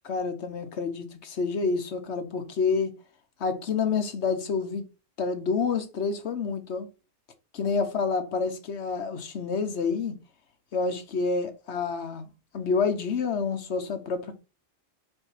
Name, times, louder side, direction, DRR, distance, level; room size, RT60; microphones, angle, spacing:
voice 1, 0.0-3.0 3.4-4.9 5.2-6.9 7.5-10.2 10.7-12.3 12.5-14.4, left 5 dB, 65° left, 1.2 m, -28 dB
4.5 x 4.4 x 5.5 m
omnidirectional pair, 1.3 m